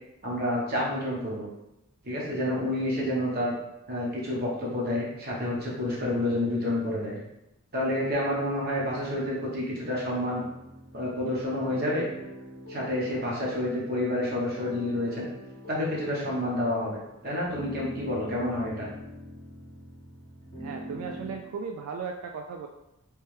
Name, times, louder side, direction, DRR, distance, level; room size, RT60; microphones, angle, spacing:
voice 1, 0.2-1.5 2.0-3.5 3.9-7.2 7.7-10.4 10.9-12.0 12.7-15.3 15.7-18.9, left 1 dB, 45° right, -4 dB, 1.0 m, -29 dB
sound 1, 10.3-21.3, equal, 30° left, 0.8 m, -44 dB
voice 2, 20.6-22.7, right 5 dB, 80° right, 4 dB, 0.3 m, -36 dB
3.3 x 3.0 x 3.2 m, 0.90 s
head